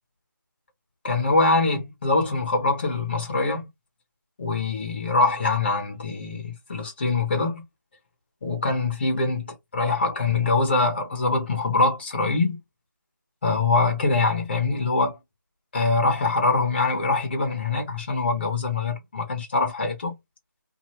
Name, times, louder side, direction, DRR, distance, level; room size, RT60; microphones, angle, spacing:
voice 1, 1.0-3.7 4.4-7.6 8.4-12.6 13.4-15.2 15.7-20.2, left 3 dB, 30° left, 0.9 m, -23 dB
2.7 x 2.5 x 3.0 m
figure-of-eight pair, 165°, 11 cm